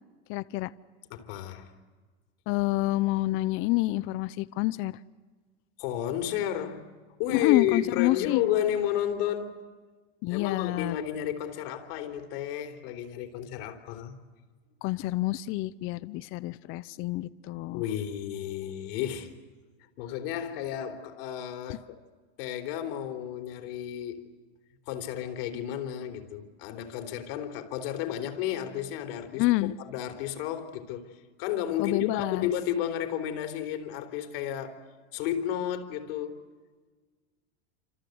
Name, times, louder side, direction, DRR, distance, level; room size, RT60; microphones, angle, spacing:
voice 1, 0.3-0.7 2.5-5.0 7.3-8.4 10.2-11.0 14.8-17.8 21.7-21.8 29.4-29.7 31.8-32.5, left 18 dB, 40° left, 0.8 m, -28 dB
voice 2, 1.1-1.7 5.8-6.9 7.2-9.6 10.3-14.1 17.7-19.3 20.0-22.0 22.4-24.3 24.9-29.5 29.9-31.1 31.4-34.8 35.1-36.4, left 10 dB, 60° left, 3.6 m, -32 dB
28.0 x 26.5 x 8.0 m
supercardioid pair, 140°, 33 cm